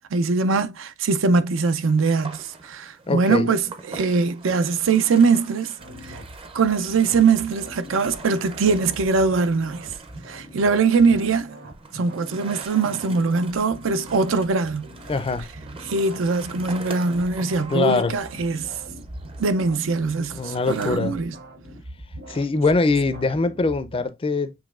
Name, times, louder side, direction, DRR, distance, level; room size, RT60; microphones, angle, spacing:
voice 1, 0.1-5.7 6.0-6.2 6.5-9.9 10.3-11.6 11.9-14.9 15.9-18.7 19.4-21.3, right 4 dB, 80° right, 0.5 m, -22 dB
sound 1, 1.8-21.0, right 3 dB, 30° right, 0.6 m, -43 dB
voice 2, 3.1-3.5 15.1-15.5 17.7-18.2 20.3-21.2 22.3-24.5, left 3 dB, 30° left, 0.4 m, -22 dB
sound 2, 5.8-24.1, right 1 dB, 55° right, 1.0 m, -42 dB
7.1 x 3.0 x 2.4 m
head